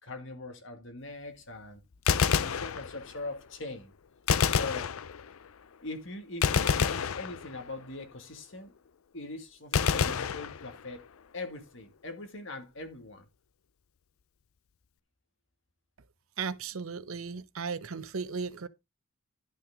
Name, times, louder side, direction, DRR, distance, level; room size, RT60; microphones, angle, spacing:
voice 1, 0.0-1.8 2.4-3.9 4.5-4.9 5.8-8.7 9.1-11.0 11.3-13.3, left 2 dB, 60° left, 2.0 m, -41 dB
Gunshot gunfire, 1.9-3.3 4.3-5.5 6.4-7.8 9.7-11.1, left 6 dB, 80° left, 0.5 m, -28 dB
voice 2, 16.4-18.7, right 5 dB, 80° right, 0.8 m, -36 dB
11.5 x 6.0 x 3.6 m
head